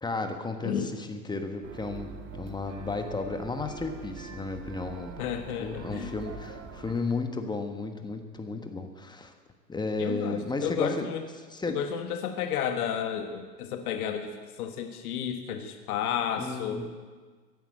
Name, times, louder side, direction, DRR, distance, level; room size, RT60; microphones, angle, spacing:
voice 1, 0.0-5.2 5.6-9.3 9.7-11.1 11.5-11.8 16.4-16.9, left 3 dB, 10° left, 6 dB, 1.3 m, -33 dB
sound 1, 1.6-6.9, right 5 dB, 35° right, 2.1 m, -44 dB
voice 2, 5.2-6.1 10.0-11.3 11.7-16.8, left 8 dB, 60° left, 6 dB, 1.6 m, -32 dB
16.0 x 11.0 x 7.8 m, 1.5 s
hypercardioid pair, 115°, 50 cm